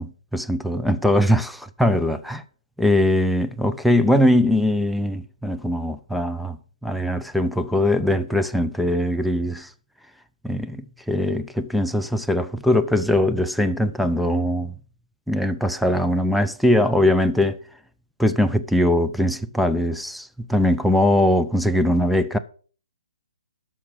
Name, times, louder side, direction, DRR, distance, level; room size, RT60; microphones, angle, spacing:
voice 1, 0.0-2.4 2.8-6.6 6.8-9.7 10.4-14.7 15.3-17.6 18.2-22.4, left 1 dB, ahead, 0.5 m, -21 dB
12.5 x 5.9 x 5.8 m
hypercardioid pair, 150°, 4 cm